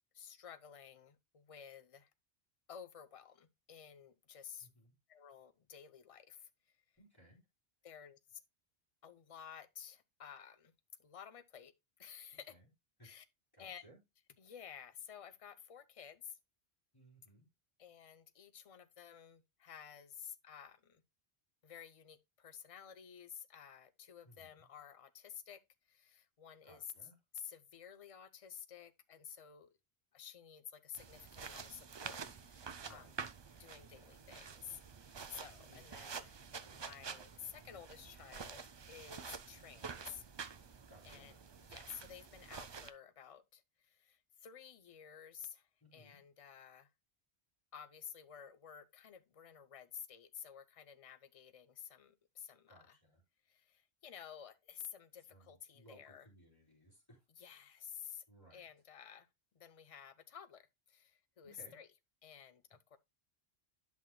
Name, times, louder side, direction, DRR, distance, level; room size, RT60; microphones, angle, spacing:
voice 1, 0.1-2.1 2.7-4.7 5.1-6.5 7.8-8.4 9.0-10.7 11.0-11.7 12.0-12.5 13.0-13.2 13.6-13.8 14.4-16.4 17.8-21.0 21.6-25.6 25.9-26.9 27.3-29.7 30.1-33.1 33.5-34.8 35.3-36.4 36.7-40.2 41.0-41.4 41.6-46.9 47.7-53.0 53.5-56.3 57.4-58.2 58.5-59.3 59.5-61.9 62.2-63.0, left 8 dB, 40° left, 0.7 m, -53 dB
voice 2, 4.6-4.9 7.0-7.4 12.5-12.6 13.0-13.1 13.5-14.0 16.9-17.5 24.2-24.7 26.6-27.1 32.8-33.1 35.7-35.8 36.5-36.8 40.9-41.3 45.8-46.2 52.7-53.2 55.2-57.2 58.3-58.7 61.4-61.8, right 1 dB, 20° left, 3.3 m, -62 dB
sound 1, 31.0-42.9, right 5 dB, 40° right, 0.4 m, -49 dB
10.5 x 5.9 x 2.3 m
omnidirectional pair, 1.1 m